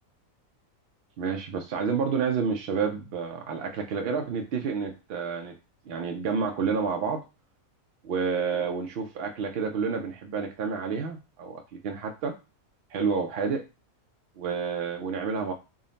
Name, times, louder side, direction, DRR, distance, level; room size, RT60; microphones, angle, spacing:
voice 1, 1.2-5.6 5.9-7.2 8.0-12.4 12.9-13.6 14.4-15.5, right 5 dB, 70° right, 4 dB, 0.6 m, -29 dB
3.6 x 2.1 x 3.8 m, 0.28 s
omnidirectional pair, 1.5 m